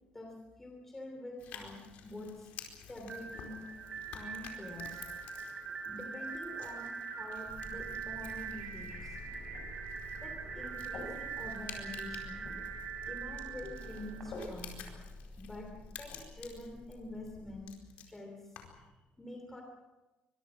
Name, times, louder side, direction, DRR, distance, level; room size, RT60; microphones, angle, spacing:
voice 1, 0.1-2.5 2.9-3.6 4.1-5.1 5.8-9.6 10.2-12.6 13.0-14.8 15.4-15.7 16.0-17.8 18.1-18.9 19.2-19.6, left 1 dB, 10° left, 1 dB, 3.0 m, -47 dB
sound 1, 1.4-18.9, left 8 dB, 60° left, 4.5 m, -53 dB
sound 2, 3.0-14.9, right 6 dB, 30° right, 6.1 m, -43 dB
sound 3, 7.5-17.6, left 1 dB, 45° left, 7.1 m, -48 dB
25.0 x 22.5 x 6.2 m, 1.1 s
cardioid pair, 180°, 3 cm